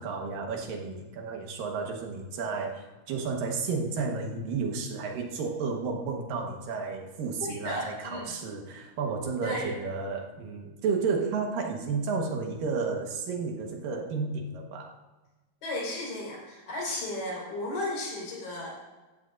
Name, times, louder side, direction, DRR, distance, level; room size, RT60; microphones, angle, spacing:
voice 1, 0.0-14.9, right 4 dB, 70° right, 2 dB, 3.0 m, -32 dB
voice 2, 7.4-8.4 9.4-9.8 15.6-18.7, left 1 dB, 70° left, -4 dB, 6.2 m, -34 dB
15.5 x 14.5 x 2.5 m, 1.2 s
omnidirectional pair, 4.2 m